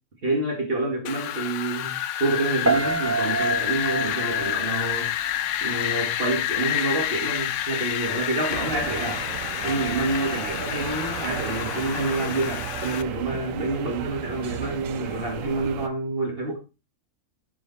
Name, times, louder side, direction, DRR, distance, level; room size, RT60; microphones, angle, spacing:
voice 1, 0.2-5.1 5.6-9.2 9.6-16.6, right 2 dB, 45° right, 2.4 m, -28 dB
Wind, 1.1-13.0, left 12 dB, 70° left, 0.9 m, -29 dB
Piano, 2.6-5.7 6.0-6.5, right 4 dB, 15° right, 0.5 m, -28 dB
sound 1, 8.5-15.9, right 10 dB, 75° right, 1.1 m, -34 dB
10.0 x 5.2 x 4.2 m
omnidirectional pair, 1.4 m